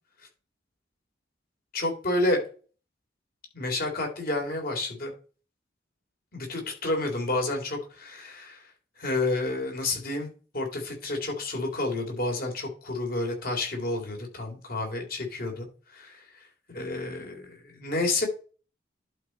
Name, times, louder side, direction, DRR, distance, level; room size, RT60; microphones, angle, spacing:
voice 1, 1.7-2.4 3.5-5.1 6.3-8.7 9.0-10.3 10.5-16.2 16.7-18.3, left 2 dB, 55° left, 2 dB, 3.4 m, -30 dB
11.0 x 4.7 x 4.2 m, 0.38 s
head